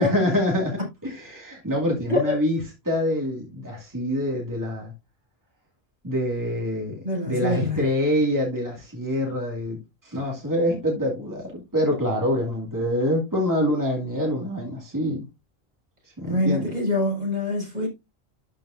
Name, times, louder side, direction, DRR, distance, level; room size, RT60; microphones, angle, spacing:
voice 1, 0.0-2.6 2.8-4.9 6.0-15.2 16.2-16.7, left 1 dB, 20° right, 2.3 m, -25 dB
voice 2, 7.0-7.8 16.3-17.9, left 2 dB, 55° right, 4.8 m, -24 dB
12.5 x 5.3 x 2.6 m
omnidirectional pair, 1.0 m